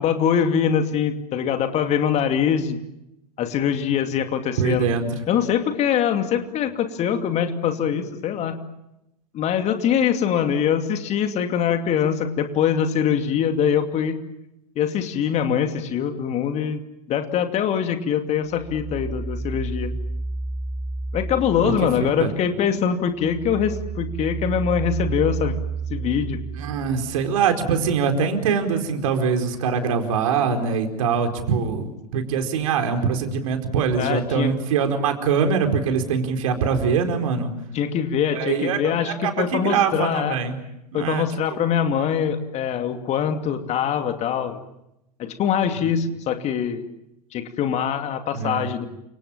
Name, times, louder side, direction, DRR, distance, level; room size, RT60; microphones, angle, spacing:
voice 1, 0.0-2.8 3.4-4.9 5.3-8.6 9.3-14.2 14.8-16.8 17.1-19.9 21.1-25.6 25.9-26.4 34.0-34.5 37.7-40.4 40.9-44.6 45.2-46.8 47.3-48.9, left 8 dB, 35° left, 6 dB, 2.6 m, -23 dB
voice 2, 4.6-5.1 21.6-22.3 26.6-37.5 38.3-40.6 40.9-41.2 45.7-45.9 48.3-48.7, right 6 dB, 60° right, 5 dB, 4.5 m, -23 dB
sound 1, 18.5-22.4 22.8-27.3, right 4 dB, 5° right, 4.5 m, -31 dB
29.5 x 26.0 x 7.3 m, 0.85 s
figure-of-eight pair, 90°, 20 cm